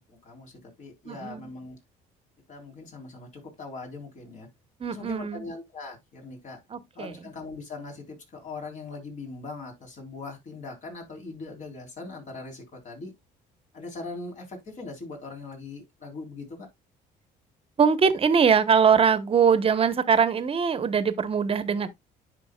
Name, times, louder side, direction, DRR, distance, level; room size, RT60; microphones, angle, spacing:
voice 1, 0.1-1.8 2.5-4.5 4.9-6.6 6.9-13.1 13.7-16.7, left 3 dB, 45° left, 3.7 m, -40 dB
voice 2, 1.1-1.5 4.8-5.4 6.7-7.1 17.8-21.9, right 6 dB, 35° right, 1.0 m, -22 dB
9.9 x 5.8 x 2.3 m
cardioid pair, 110°, 17 cm